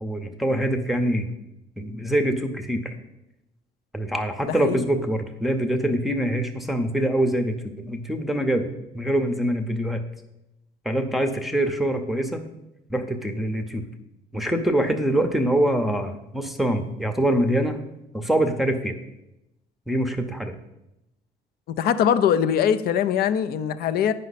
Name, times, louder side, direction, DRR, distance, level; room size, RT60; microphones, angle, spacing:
voice 1, 0.0-1.3 1.8-2.9 3.9-8.7 8.9-10.0 10.8-12.4 12.9-13.8 14.3-17.8 18.1-18.9 19.9-20.6, right 1 dB, ahead, 4 dB, 0.7 m, -24 dB
voice 2, 21.7-24.1, left 8 dB, 65° left, 12 dB, 0.5 m, -22 dB
9.1 x 5.4 x 4.1 m, 0.90 s
cardioid pair, 110°, 17 cm